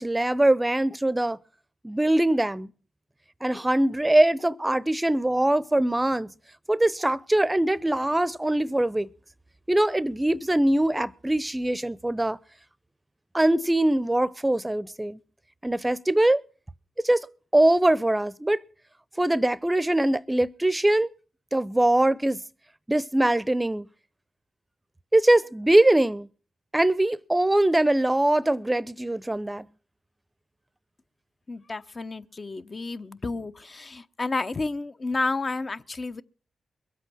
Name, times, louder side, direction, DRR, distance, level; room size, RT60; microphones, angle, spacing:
voice 1, 0.0-1.4 1.8-2.7 3.4-6.3 6.7-9.1 9.7-12.4 13.3-15.2 15.6-16.4 17.0-17.3 17.5-18.6 19.2-21.1 21.5-22.4 22.9-23.9 25.1-26.3 26.7-29.7, right 1 dB, 15° right, 0.7 m, -22 dB
voice 2, 31.5-36.2, left 3 dB, 40° left, 0.9 m, -31 dB
22.0 x 8.2 x 6.2 m
supercardioid pair, 40°, 0 cm